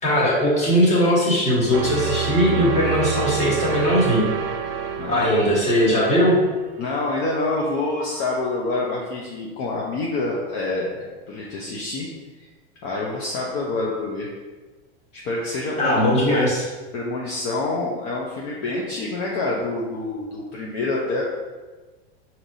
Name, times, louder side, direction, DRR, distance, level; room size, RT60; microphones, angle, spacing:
voice 1, 0.0-4.3 5.1-6.4 15.8-16.6, equal, 25° left, -5 dB, 1.4 m, -19 dB
sound 1, 1.7-7.7, right 6 dB, 75° right, 0.5 m, -28 dB
voice 2, 5.0-5.4 6.8-12.1 12.4-12.5 12.8-14.3 15.1-16.4 16.9-21.2, left 2 dB, 50° left, -4 dB, 0.7 m, -27 dB
4.7 x 2.8 x 2.7 m, 1.3 s
supercardioid pair, 120°, 29 cm